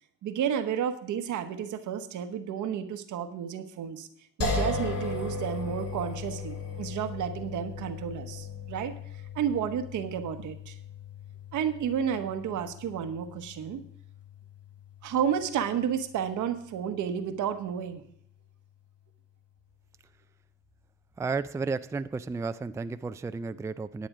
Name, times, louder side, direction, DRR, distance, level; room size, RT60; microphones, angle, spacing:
voice 1, 0.2-4.1 4.4-9.0 9.3-10.8 11.5-13.8 15.0-18.0, right 8 dB, 75° right, 8 dB, 1.1 m, -31 dB
sound 1, 4.4-17.5, left 3 dB, 55° left, 2.6 m, -38 dB
voice 2, 21.2-24.1, right 4 dB, 10° right, 11 dB, 0.3 m, -33 dB
10.5 x 8.6 x 4.9 m, 0.67 s
cardioid pair, 90°, 30 cm